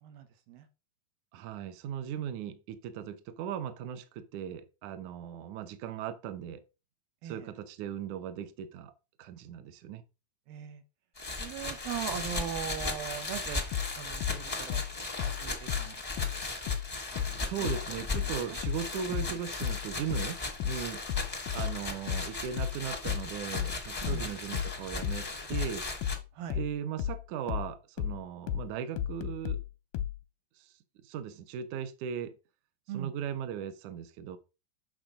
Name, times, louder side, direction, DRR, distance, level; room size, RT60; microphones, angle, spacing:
voice 1, 0.0-0.7 7.2-7.5 10.5-10.8 11.3-13.6 13.9-14.8 15.2-16.3 17.1-17.7 18.2-18.6 19.0-19.4 24.0-24.4 26.3-26.6 32.9-33.1, right 10 dB, 85° right, 3.0 m, -40 dB
voice 2, 1.3-6.6 7.2-8.9 9.2-10.0 17.4-21.0 21.5-25.9 26.6-29.6 30.6-30.7 31.0-32.4 32.9-34.4, right 8 dB, 70° right, 2.1 m, -38 dB
sound 1, 11.1-26.2, left 3 dB, 35° left, 0.5 m, -37 dB
sound 2, 13.7-16.9 17.2-30.2, left 10 dB, 90° left, 2.6 m, -34 dB
9.1 x 6.1 x 5.0 m
omnidirectional pair, 4.2 m